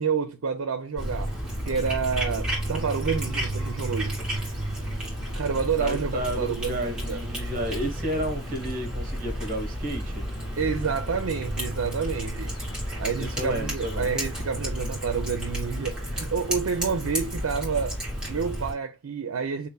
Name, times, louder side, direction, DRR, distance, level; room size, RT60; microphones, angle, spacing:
voice 1, 0.0-1.3 1.7-4.2 5.3-7.2 10.6-12.6 13.0-18.0 18.3-19.7, right 6 dB, 80° right, 0.5 m, -29 dB
Cat, 1.0-18.7, equal, 5° right, 2.4 m, -31 dB
voice 2, 5.8-10.2 13.2-14.1, equal, 40° right, 1.2 m, -32 dB
6.7 x 3.0 x 2.2 m
head